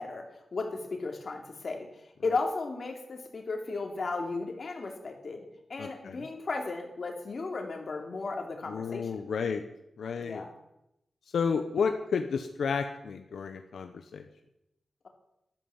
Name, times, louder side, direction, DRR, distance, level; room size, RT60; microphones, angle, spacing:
voice 1, 0.0-1.9 2.2-5.4 5.7-9.1 10.2-10.5, left 3 dB, 45° left, 2 dB, 3.0 m, -35 dB
voice 2, 5.8-6.2 8.7-9.6 10.0-10.4 11.3-14.2, left 6 dB, 85° left, 6 dB, 1.1 m, -31 dB
13.5 x 12.5 x 7.2 m, 0.85 s
wide cardioid pair, 145°, 0 cm